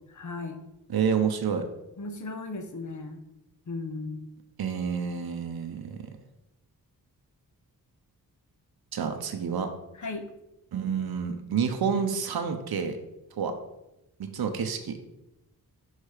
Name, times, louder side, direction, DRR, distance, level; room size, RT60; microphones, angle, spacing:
voice 1, 0.1-0.6 2.0-3.2 3.7-4.3 10.0-10.3, left 3 dB, 55° left, 6 dB, 0.9 m, -36 dB
voice 2, 0.9-1.6 4.6-6.0 8.9-9.7 10.7-13.0 13.4-13.5 14.2-15.0, right 6 dB, 85° right, 6 dB, 0.8 m, -29 dB
6.5 x 4.2 x 4.9 m, 0.90 s
wide cardioid pair, 140°, 37 cm